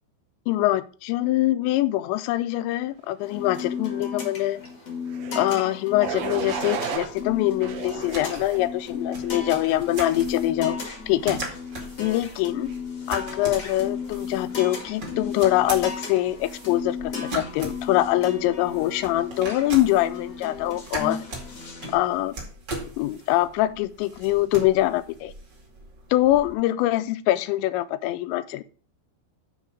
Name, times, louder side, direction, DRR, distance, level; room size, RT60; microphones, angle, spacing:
voice 1, 0.5-4.6 5.4-10.8 11.1-11.4 12.0-12.7 13.1-21.2 21.9-22.4 23.0-25.3 26.1-28.6, left 15 dB, 85° left, 13 dB, 2.9 m, -24 dB
sound 1, 3.2-21.9, left 6 dB, 65° left, 1.0 m, -35 dB
sound 2, 5.1-5.5 6.0-7.1 7.6-8.6 9.2-9.6, right 7 dB, 70° right, 2.9 m, -33 dB
sound 3, 6.9-26.5, right 2 dB, 35° right, 1.9 m, -40 dB
10.0 x 3.6 x 6.2 m, 0.38 s
omnidirectional pair, 5.1 m